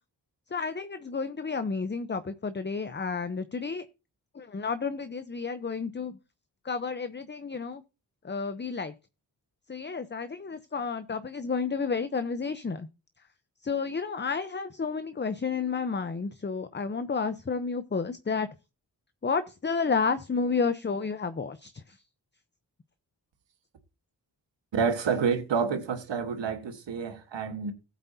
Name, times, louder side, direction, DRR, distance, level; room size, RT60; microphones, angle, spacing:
voice 1, 0.5-3.9 4.3-6.2 6.6-7.8 8.2-8.9 9.7-12.9 13.6-18.5 19.2-22.0, left 5 dB, 25° left, 0.7 m, -31 dB
voice 2, 24.7-27.7, right 6 dB, 90° right, 1.5 m, -28 dB
15.0 x 8.3 x 2.7 m
cardioid pair, 45°, 43 cm